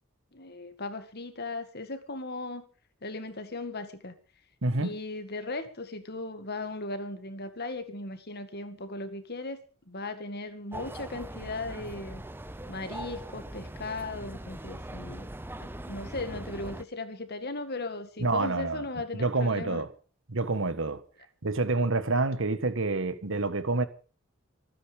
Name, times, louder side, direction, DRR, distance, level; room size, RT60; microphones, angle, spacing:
voice 1, 0.3-2.7 3.0-4.1 4.8-12.2 12.7-15.3 15.6-19.8, left 2 dB, 50° left, 2.0 m, -37 dB
voice 2, 4.6-4.9 18.2-18.9 19.1-19.9 20.3-21.0 21.4-23.9, right 3 dB, 60° right, 1.6 m, -27 dB
sound 1, 10.7-16.8, right 1 dB, 10° right, 0.8 m, -41 dB
24.5 x 9.8 x 5.2 m
head